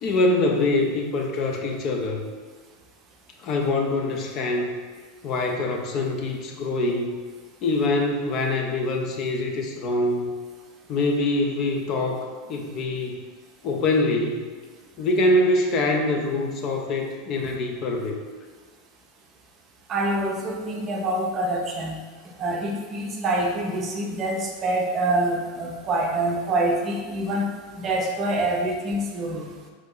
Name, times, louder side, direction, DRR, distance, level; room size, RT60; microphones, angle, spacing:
voice 1, 0.0-2.2 3.4-4.8 5.2-7.2 7.6-10.3 10.9-13.2 13.6-14.4 15.0-18.2, left 2 dB, 40° left, 2 dB, 0.4 m, -24 dB
voice 2, 19.9-22.0 22.4-27.5 27.8-29.5, right 1 dB, 30° right, 1 dB, 0.6 m, -26 dB
3.1 x 2.8 x 3.7 m, 1.5 s
figure-of-eight pair, 85°, 0 cm